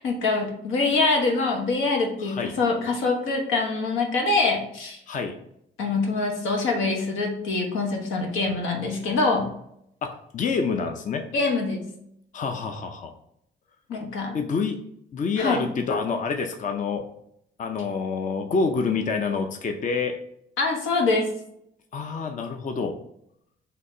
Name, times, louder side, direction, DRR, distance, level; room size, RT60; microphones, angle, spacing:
voice 1, 0.0-5.0 5.8-9.5 11.3-11.9 13.9-14.3 15.4-15.6 20.6-21.3, left 3 dB, 85° left, 1 dB, 1.1 m, -24 dB
voice 2, 2.2-2.5 5.1-5.3 10.0-11.2 12.3-13.1 14.3-14.8 15.1-17.0 17.6-20.1 21.9-22.9, left 4 dB, 40° left, 5 dB, 0.5 m, -27 dB
4.1 x 2.8 x 4.2 m, 0.73 s
cardioid pair, 90°, 20 cm